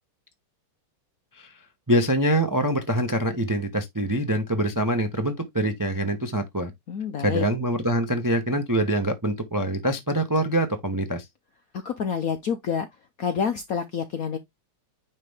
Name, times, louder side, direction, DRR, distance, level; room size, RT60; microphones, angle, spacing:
voice 1, 1.9-6.7 7.2-11.2, right 1 dB, 20° right, 0.5 m, -24 dB
voice 2, 6.9-7.4 11.8-12.9 13.2-14.4, left 7 dB, 65° left, 0.9 m, -28 dB
9.8 x 3.4 x 3.5 m
omnidirectional pair, 2.3 m